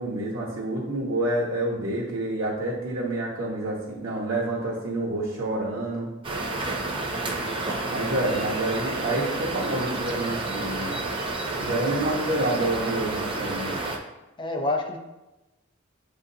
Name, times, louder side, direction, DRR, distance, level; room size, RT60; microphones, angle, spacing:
voice 1, 0.0-6.1 7.9-10.9 11.6-13.7, right 1 dB, 85° right, -4 dB, 1.0 m, -28 dB
sound 1, 6.2-14.0, right 2 dB, 25° right, 0.5 m, -30 dB
voice 2, 7.1-7.5 14.4-15.0, left 2 dB, 25° left, 3 dB, 0.5 m, -29 dB
7.3 x 2.5 x 2.7 m, 1.0 s
head